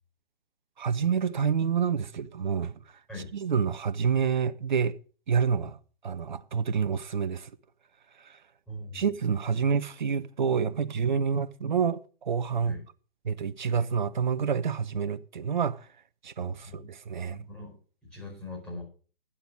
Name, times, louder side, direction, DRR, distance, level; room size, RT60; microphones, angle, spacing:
voice 1, 0.8-2.7 3.3-5.0 5.3-5.8 6.0-7.5 8.9-12.8 13.2-15.9 16.2-17.4, right 6 dB, 55° right, 0.8 m, -28 dB
voice 2, 8.7-9.1 12.6-12.8 16.4-16.9 17.2-17.8 18.1-18.8, left 1 dB, 5° left, 4.6 m, -41 dB
10.0 x 8.0 x 6.3 m
figure-of-eight pair, 130°, 29 cm